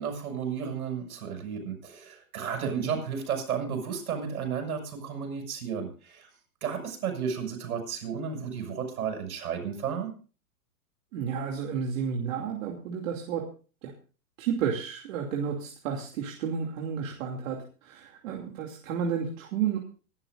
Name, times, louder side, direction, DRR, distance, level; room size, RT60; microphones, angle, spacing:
voice 1, 0.0-6.3 6.6-10.1, right 7 dB, 80° right, 4 dB, 6.8 m, -33 dB
voice 2, 11.1-13.4 13.8-13.9 14.4-19.8, right 7 dB, 60° right, 1 dB, 2.7 m, -31 dB
26.0 x 12.0 x 2.5 m, 0.37 s
hypercardioid pair, 135°, 43 cm